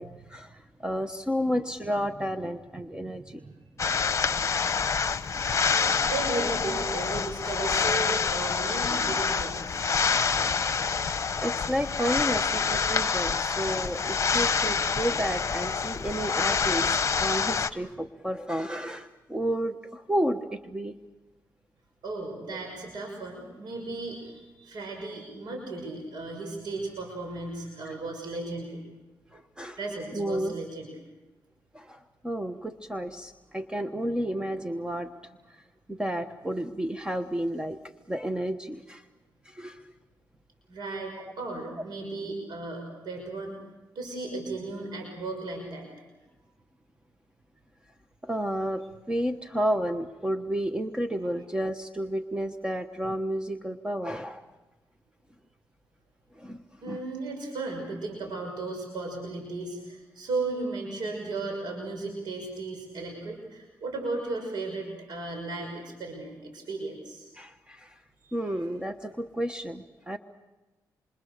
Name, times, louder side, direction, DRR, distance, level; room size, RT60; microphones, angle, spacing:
voice 1, 0.0-3.5 5.5-5.8 11.4-21.0 27.8-27.9 29.3-29.8 30.1-30.5 31.7-35.6 35.9-37.8 38.1-39.1 39.4-39.9 48.2-54.5 56.3-57.0 67.4-68.0 68.3-70.2, equal, 10° right, 7 dB, 1.3 m, -31 dB
sound 1, 3.8-17.7, left 5 dB, 45° left, 1.1 m, -27 dB
voice 2, 5.7-9.8 22.0-28.8 29.8-30.9 34.6-34.8 40.7-43.6 43.9-45.9 56.8-67.3 68.2-68.5, right 3 dB, 75° right, 2 dB, 5.8 m, -35 dB
27.5 x 26.5 x 6.7 m, 1.1 s
cardioid pair, 75°, 7 cm